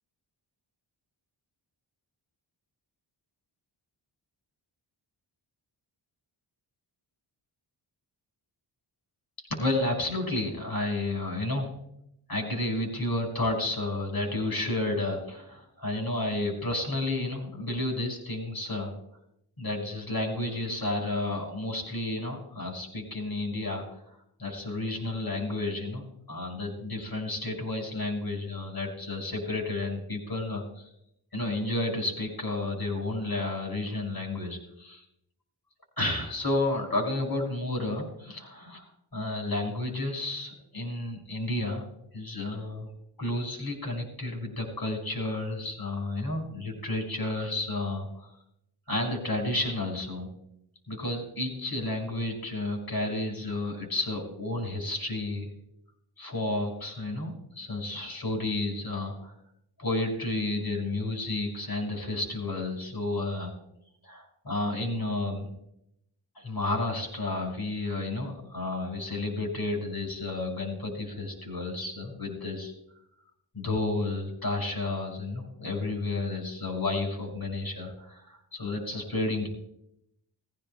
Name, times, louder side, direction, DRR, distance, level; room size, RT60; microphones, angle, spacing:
voice 1, 9.5-11.7 12.3-18.9 19.6-23.9 24.4-26.0 26.3-30.9 31.3-35.0 36.0-38.8 39.1-41.9 42.1-42.9 43.2-48.3 48.9-50.3 50.9-55.5 56.2-59.3 59.8-63.5 64.0-65.5 66.4-72.7 73.5-79.5, left 2 dB, 50° left, 0 dB, 5.4 m, -31 dB
21.0 x 15.0 x 2.2 m, 0.78 s
wide cardioid pair, 70°, 49 cm